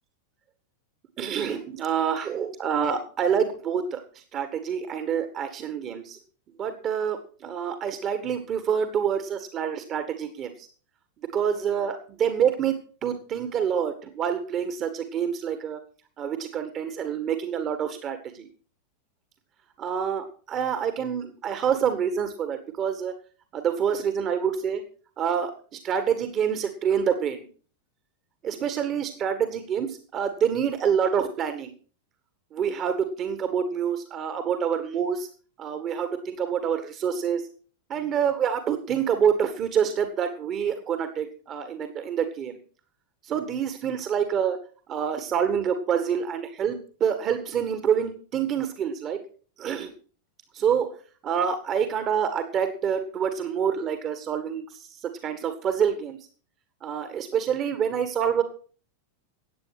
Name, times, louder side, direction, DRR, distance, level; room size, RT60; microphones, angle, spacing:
voice 1, 1.2-4.0 4.3-6.2 6.6-10.7 11.3-12.8 13.0-15.8 16.2-18.5 19.8-23.1 23.5-24.8 25.2-27.5 28.4-31.7 32.5-35.3 35.6-37.4 37.9-42.6 43.2-44.6 44.9-49.2 49.6-49.9 50.5-50.9 51.2-56.2 56.8-58.4, right 8 dB, 30° right, 9 dB, 1.7 m, -27 dB
15.0 x 9.0 x 6.0 m, 0.41 s
figure-of-eight pair, 90°, 0 cm